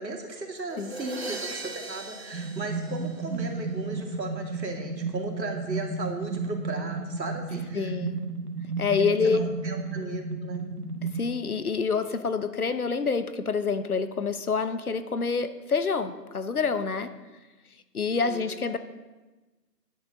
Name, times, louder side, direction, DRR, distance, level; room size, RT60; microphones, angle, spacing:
voice 1, 0.0-7.9 9.2-10.7 18.3-18.4, right 2 dB, 85° right, 2 dB, 2.6 m, -36 dB
sound 1, 0.7-3.7, right 3 dB, 40° right, 1.0 m, -39 dB
sound 2, 2.3-11.2, right 3 dB, 65° right, 1.7 m, -33 dB
voice 2, 7.7-8.2 8.8-9.4 11.0-17.1 17.9-18.8, left 5 dB, 60° left, 11 dB, 1.0 m, -27 dB
10.5 x 6.6 x 6.8 m, 1.2 s
hypercardioid pair, 175°, 50 cm